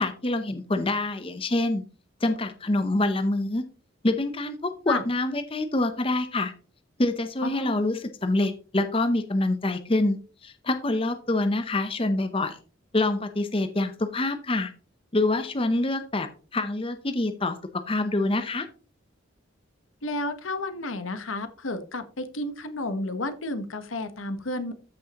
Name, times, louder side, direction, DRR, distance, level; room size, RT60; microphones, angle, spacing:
voice 1, 0.0-1.8 2.2-3.6 4.0-6.5 7.0-10.2 10.4-12.6 12.9-14.7 15.1-16.3 16.5-17.6 17.9-18.7, left 2 dB, 25° left, 8 dB, 0.7 m, -26 dB
voice 2, 7.4-7.8 20.0-24.7, left 2 dB, 90° left, 9 dB, 1.2 m, -31 dB
13.5 x 6.1 x 3.0 m, 0.37 s
head